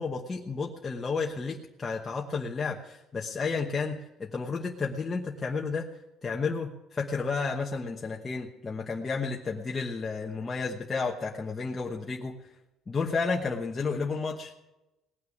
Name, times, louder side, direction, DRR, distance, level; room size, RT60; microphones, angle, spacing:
voice 1, 0.0-5.9 6.2-12.3 12.9-14.5, left 4 dB, 20° left, -1 dB, 1.1 m, -32 dB
19.0 x 6.7 x 9.3 m, 0.95 s
cardioid pair, 165°, 0 cm